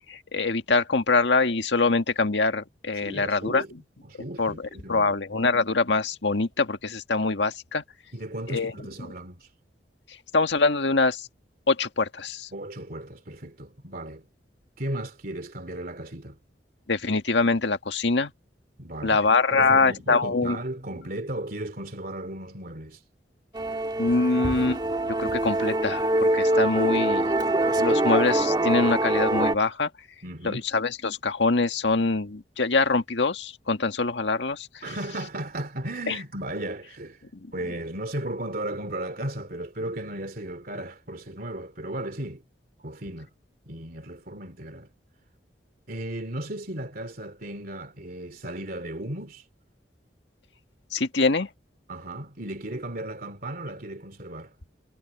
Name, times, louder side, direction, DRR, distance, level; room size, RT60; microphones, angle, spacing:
voice 1, 0.1-3.6 4.4-7.8 8.5-8.7 10.3-11.3 11.7-12.5 16.9-18.3 19.0-20.6 24.0-24.8 25.1-27.3 27.7-29.9 30.4-34.8 36.1-36.2 37.3-37.5 50.9-51.5, left 3 dB, 80° left, 1.8 m, -24 dB
voice 2, 2.9-3.7 4.0-5.1 8.1-9.5 12.5-14.3 14.8-16.4 18.8-19.2 19.5-23.0 30.2-30.6 34.8-37.2 37.5-42.4 42.8-43.3 43.7-44.9 45.9-49.5 51.9-54.5, right 1 dB, 55° right, 2.9 m, -35 dB
Musical instrument, 23.5-29.5, right 1 dB, 25° right, 1.5 m, -24 dB
head